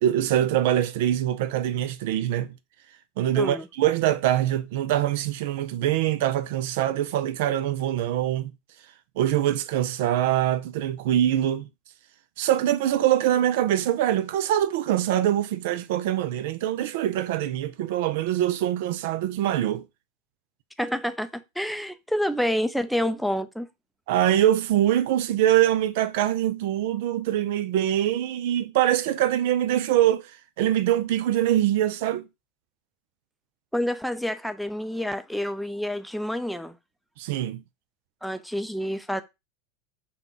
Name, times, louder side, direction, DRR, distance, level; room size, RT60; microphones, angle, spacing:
voice 1, 0.0-2.5 3.2-8.5 9.2-11.7 12.4-19.8 24.1-30.3 30.6-32.2 37.2-37.6, right 12 dB, 65° right, 0.3 m, -23 dB
voice 2, 3.4-3.7 20.8-23.7 33.7-36.8 38.2-39.2, equal, ahead, 0.4 m, -28 dB
3.6 x 2.2 x 3.8 m
hypercardioid pair, 105°, 0 cm